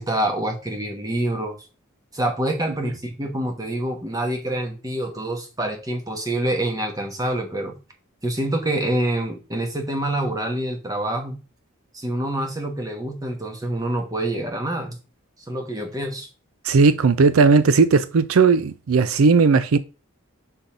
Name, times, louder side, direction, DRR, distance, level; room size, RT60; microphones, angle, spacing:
voice 1, 0.0-1.6 2.1-7.7 8.2-11.4 11.9-15.0 15.5-16.3, right 1 dB, 15° right, 1.2 m, -26 dB
voice 2, 16.6-19.8, right 4 dB, 80° right, 0.5 m, -16 dB
5.4 x 4.4 x 5.1 m
head